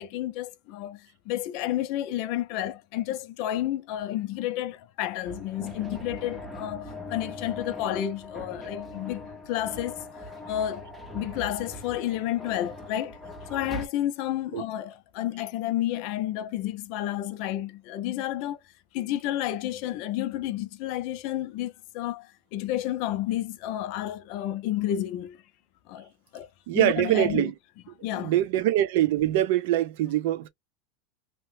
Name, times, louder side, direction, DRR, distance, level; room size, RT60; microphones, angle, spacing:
voice 1, 0.0-10.2 10.5-13.2 13.5-18.6 18.9-25.4 25.9-27.5 28.0-28.3, left 12 dB, 45° left, 0.4 m, -31 dB
sound 1, 5.2-13.9, left 1 dB, ahead, 0.6 m, -40 dB
voice 2, 26.7-27.5 28.2-30.5, right 13 dB, 60° right, 0.5 m, -23 dB
2.8 x 2.1 x 3.1 m
supercardioid pair, 165°, 0 cm